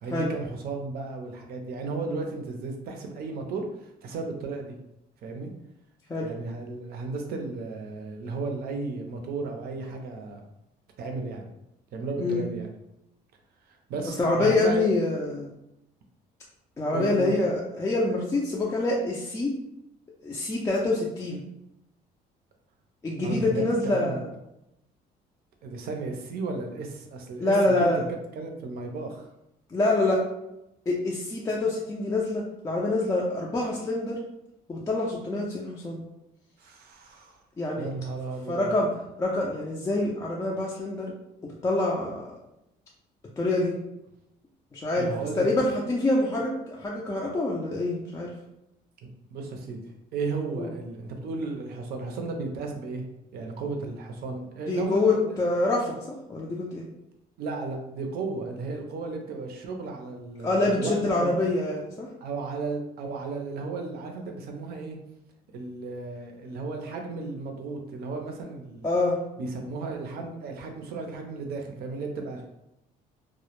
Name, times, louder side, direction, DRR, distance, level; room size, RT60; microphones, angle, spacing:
voice 1, 0.0-4.8 5.2-5.5 6.2-10.4 11.0-11.5 11.9-12.7 13.7-14.8 16.9-17.3 23.2-24.2 25.6-27.9 28.4-29.3 36.6-37.4 37.8-38.7 45.0-45.6 49.0-49.8 50.1-53.0 53.3-55.4 57.4-61.3 62.2-65.0 65.5-68.9 69.4-72.4, right 3 dB, 65° right, 3 dB, 0.5 m, -34 dB
voice 2, 14.2-15.5 16.8-19.5 20.2-21.4 23.0-24.3 27.4-28.0 29.7-30.2 30.9-34.2 34.7-36.0 37.6-37.9 38.5-38.9 39.2-41.1 41.6-42.3 43.4-43.7 44.7-48.3 50.6-50.7 54.7-56.9 60.4-62.1 68.8-69.2, left 2 dB, 20° left, -3 dB, 0.3 m, -26 dB
2.1 x 2.0 x 2.9 m, 0.86 s
cardioid pair, 110°, 17 cm